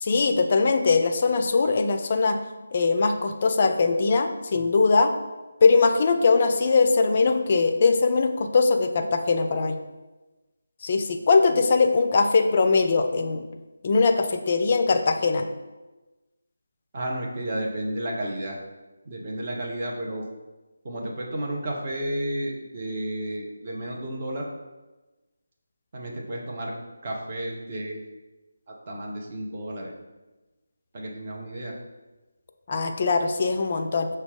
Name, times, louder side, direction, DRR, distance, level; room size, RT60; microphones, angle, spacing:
voice 1, 0.0-2.4 2.7-5.1 5.6-9.8 10.8-13.5 13.8-15.5 32.7-34.1, left 4 dB, 35° left, 6 dB, 0.4 m, -21 dB
voice 2, 16.9-18.6 19.1-20.3 20.8-24.5 25.9-26.7 27.0-28.1 28.9-29.9 30.9-31.8, right 1 dB, 35° right, -2 dB, 0.8 m, -32 dB
5.8 x 2.2 x 3.6 m, 1.1 s
figure-of-eight pair, 155°, 0 cm